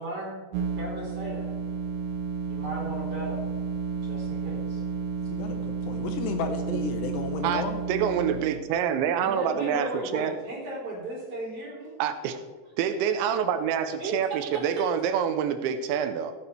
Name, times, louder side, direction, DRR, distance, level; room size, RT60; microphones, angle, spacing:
voice 1, 0.0-1.5 2.4-3.5 4.0-4.8 9.2-12.0 14.0-14.8, right 1 dB, 35° right, -5 dB, 4.4 m, -36 dB
sound 1, 0.5-8.6, right 5 dB, 70° right, 2.8 m, -32 dB
voice 2, 5.3-7.8, left 5 dB, 75° left, 6 dB, 2.8 m, -33 dB
voice 3, 7.4-10.3 12.0-12.4 12.8-16.3, right 8 dB, 85° right, 9 dB, 2.9 m, -27 dB
15.5 x 9.5 x 3.3 m, 1.4 s
omnidirectional pair, 5.3 m